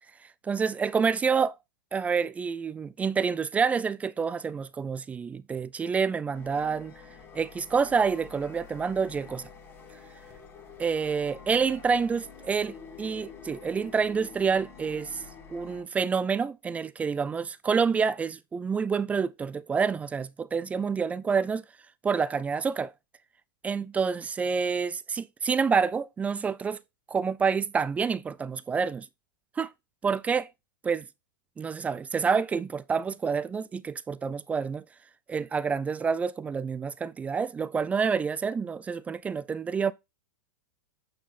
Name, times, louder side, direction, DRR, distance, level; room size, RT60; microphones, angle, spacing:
voice 1, 0.4-1.6 1.9-6.9 7.3-9.5 10.8-15.2 15.5-21.6 22.0-22.9 23.6-26.8 27.1-29.1 29.6-29.7 30.0-30.5 30.8-31.1 31.6-34.8 35.3-39.9, right 5 dB, 10° right, 0.3 m, -28 dB
sound 1, 6.3-15.8, left 6 dB, 20° left, 2.6 m, -48 dB
9.1 x 4.1 x 4.2 m
hypercardioid pair, 135°, 11 cm